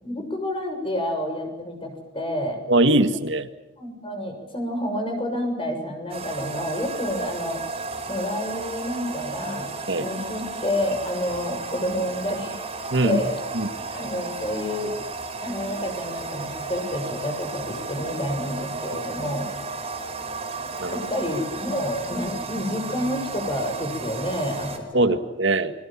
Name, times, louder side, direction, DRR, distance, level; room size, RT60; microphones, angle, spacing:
voice 1, 0.0-2.6 3.8-7.6 8.1-9.7 10.0-12.6 13.0-13.4 13.9-15.0 15.4-19.5 20.9-25.2, left 1 dB, 30° left, 5 dB, 6.8 m, -29 dB
voice 2, 2.7-3.5 9.9-10.1 12.9-13.2 13.5-13.7 20.8-21.1 24.9-25.7, right 2 dB, 75° right, 9 dB, 1.8 m, -21 dB
sound 1, 6.1-24.8, right 3 dB, 35° right, 5.3 m, -34 dB
29.5 x 23.0 x 7.5 m, 0.93 s
head